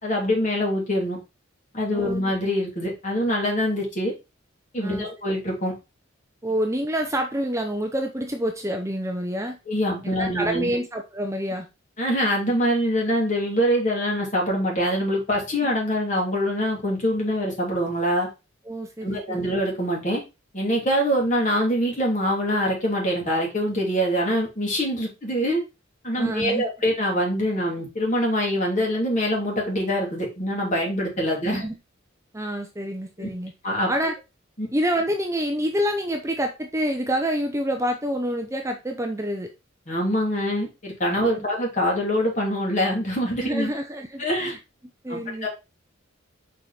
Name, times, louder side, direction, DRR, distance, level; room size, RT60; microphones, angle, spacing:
voice 1, 0.0-1.2 1.7-4.1 4.7-5.7 9.7-10.7 12.0-18.3 19.0-20.2 20.5-25.6 26.0-31.6 33.2-33.3 33.6-33.9 34.6-34.7 39.9-43.7 44.2-44.5 45.1-45.5, equal, 40° left, -1 dB, 3.3 m, -24 dB
voice 2, 6.4-9.6 10.2-11.7 15.6-15.7 18.7-19.5 26.2-26.6 30.8-30.9 31.3-31.7 32.3-33.5 33.9-34.1 34.7-39.5 41.3-41.5 43.4-44.6 45.0-45.5, equal, 15° right, 4 dB, 0.8 m, -27 dB
6.0 x 4.9 x 4.4 m, 0.27 s
head